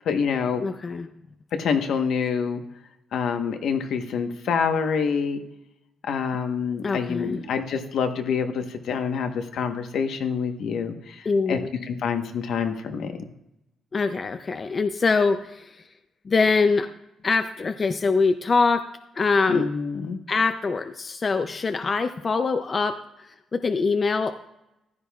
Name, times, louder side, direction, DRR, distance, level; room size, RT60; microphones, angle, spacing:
voice 1, 0.1-0.6 1.5-2.6 3.1-5.4 6.1-11.6 11.9-13.2 19.5-20.2, left 6 dB, 65° left, 6 dB, 1.0 m, -26 dB
voice 2, 0.6-1.1 6.8-7.4 11.3-11.7 13.9-15.8 16.3-16.9 17.2-18.9 19.2-19.7 20.3-24.3, left 4 dB, 30° left, 8 dB, 0.4 m, -23 dB
15.0 x 12.0 x 2.3 m, 0.88 s
cardioid pair, 160°, 0 cm